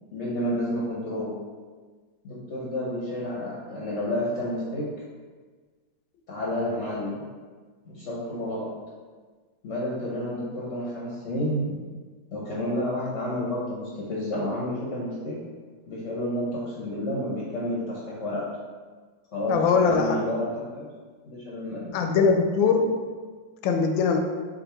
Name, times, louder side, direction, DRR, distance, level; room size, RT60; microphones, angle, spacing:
voice 1, 0.1-1.3 2.2-4.9 6.3-7.3 7.8-8.7 9.6-11.8 12.3-15.4 15.9-18.4 19.3-20.8 21.2-22.0, left 1 dB, 55° left, -6 dB, 0.8 m, -30 dB
voice 2, 19.5-20.2 21.9-22.9 23.6-24.2, left 5 dB, 80° left, 4 dB, 1.3 m, -21 dB
6.2 x 2.7 x 2.9 m, 1.4 s
omnidirectional pair, 2.1 m